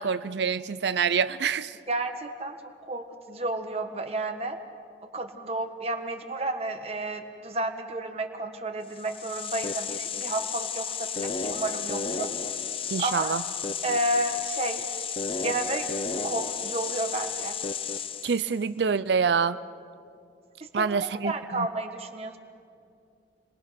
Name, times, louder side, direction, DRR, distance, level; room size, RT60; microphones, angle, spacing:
voice 1, 0.0-1.7 12.9-13.4 18.2-19.6 20.7-21.7, right 6 dB, 70° right, 14 dB, 0.5 m, -26 dB
voice 2, 1.9-2.6 2.8-4.6 5.1-12.3 13.0-13.4 13.8-14.9 15.4-15.9 16.2-17.6 20.6-22.4, right 2 dB, 35° right, 5 dB, 1.4 m, -31 dB
sound 1, 8.9-18.5, left 6 dB, 30° left, 0.6 m, -32 dB
30.0 x 20.5 x 5.9 m, 2.5 s
head